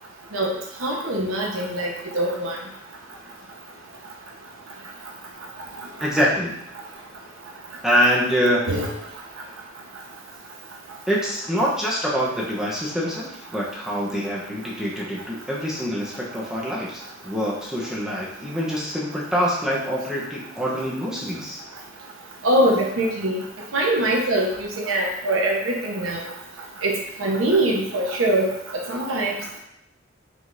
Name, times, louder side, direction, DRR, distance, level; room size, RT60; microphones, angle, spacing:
voice 1, 0.8-2.6 8.7-8.9 22.4-23.4 23.7-24.5 24.8-26.2 26.8-26.9 27.2-28.5 28.9-29.3, right 1 dB, 85° right, 0 dB, 1.0 m, -22 dB
voice 2, 6.0-6.6 7.8-8.6 11.1-21.6, equal, 5° right, -6 dB, 0.8 m, -25 dB
4.9 x 3.7 x 2.6 m, 0.80 s
head